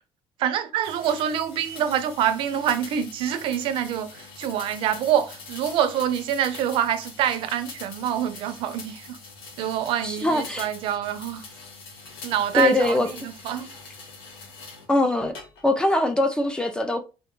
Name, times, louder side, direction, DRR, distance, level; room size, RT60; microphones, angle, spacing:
voice 1, 0.4-9.2 9.6-11.4 12.2-13.7, right 9 dB, 65° right, 0.4 m, -26 dB
sound 1, 0.8-14.9 15.4-15.9, left 4 dB, 90° left, 1.0 m, -43 dB
voice 2, 10.0-10.7 12.5-13.3 14.9-15.3 15.6-17.0, left 2 dB, 10° left, 0.3 m, -22 dB
2.5 x 2.1 x 3.7 m
cardioid pair, 155°, 10 cm